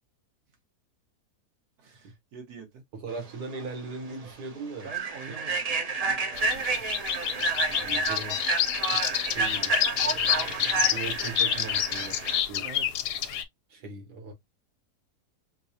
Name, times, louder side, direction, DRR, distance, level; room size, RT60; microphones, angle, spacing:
voice 1, 1.8-2.8 4.8-7.0 12.6-13.0, right 5 dB, 70° right, 1.7 m, -46 dB
voice 2, 2.9-4.9 7.7-8.4 8.9-12.2 12.5-12.7 13.7-14.3, right 4 dB, 90° right, 1.6 m, -39 dB
Human voice / Train, 3.5-3.7 4.1-4.3 4.8-12.4, right 3 dB, 55° right, 0.4 m, -30 dB
sound 1, 6.4-13.4, left 10 dB, 85° left, 1.2 m, -28 dB
5.3 x 2.1 x 2.7 m
omnidirectional pair, 1.7 m